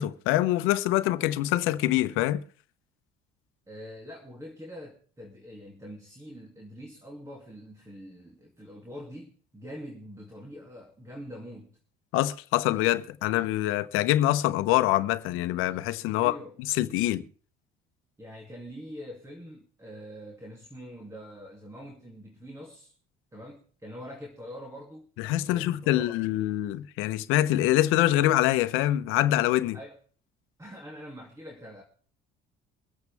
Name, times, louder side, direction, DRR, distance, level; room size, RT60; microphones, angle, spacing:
voice 1, 0.0-2.4 12.1-16.4 16.7-17.2 25.2-29.8, left 15 dB, 75° left, 0.9 m, -25 dB
voice 2, 3.7-11.8 16.1-16.6 18.2-22.9 23.3-25.1 25.4-26.2 29.7-30.0 30.6-31.8, equal, 15° right, 2.6 m, -44 dB
24.0 x 8.1 x 3.5 m
supercardioid pair, 85°, 21 cm